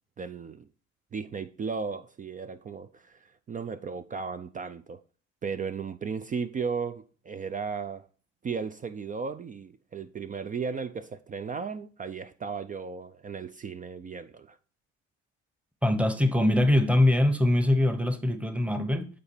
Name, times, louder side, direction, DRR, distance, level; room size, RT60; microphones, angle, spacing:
voice 1, 0.2-0.7 1.1-5.0 5.4-8.1 8.4-14.6, right 5 dB, 25° right, 0.4 m, -35 dB
voice 2, 15.8-19.1, left 1 dB, 5° right, 0.9 m, -23 dB
8.6 x 4.0 x 4.4 m
supercardioid pair, 85°, 33 cm